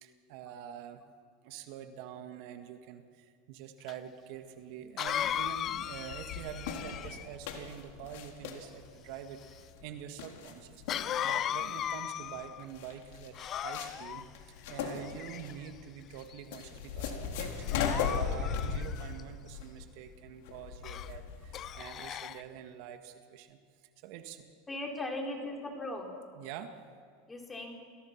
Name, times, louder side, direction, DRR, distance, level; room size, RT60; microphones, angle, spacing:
voice 1, 0.0-1.0 1.4-14.2 14.7-23.6 24.0-24.4 26.4-26.8, right 9 dB, 60° right, 6 dB, 1.9 m, -46 dB
Cough, 3.9-4.0 5.0-7.3 10.9-12.6 13.3-14.2 15.0-15.7 16.3-16.6 17.6-19.2 20.8-21.1 21.5-22.4, left 10 dB, 35° left, 0.7 m, -37 dB
sound 1, 5.1-21.8, left 7 dB, 75° left, 3.7 m, -38 dB
voice 2, 24.7-26.1 27.3-27.7, left 1 dB, 15° left, 1 dB, 4.1 m, -38 dB
30.0 x 21.0 x 6.0 m, 2.1 s
supercardioid pair, 135°, 0 cm